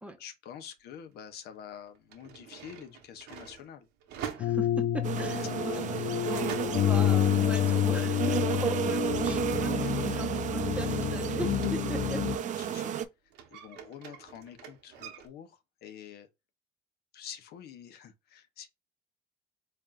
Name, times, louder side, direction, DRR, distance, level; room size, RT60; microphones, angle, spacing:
voice 1, 0.2-3.9 5.6-6.1 9.5-9.9 12.3-13.0 13.5-16.3 17.1-18.7, left 8 dB, 70° left, 0.8 m, -47 dB
sound 1, 0.9-1.0 1.9-8.9 9.2-13.0 13.3-15.3, right 8 dB, 90° right, 1.0 m, -46 dB
sound 2, 4.4-12.4, left 12 dB, 50° left, 0.4 m, -29 dB
voice 2, 4.4-12.3, right 1 dB, 5° right, 0.7 m, -39 dB
sound 3, 5.0-13.0, right 9 dB, 50° right, 0.5 m, -32 dB
4.1 x 3.4 x 2.4 m
cardioid pair, 110°, 17 cm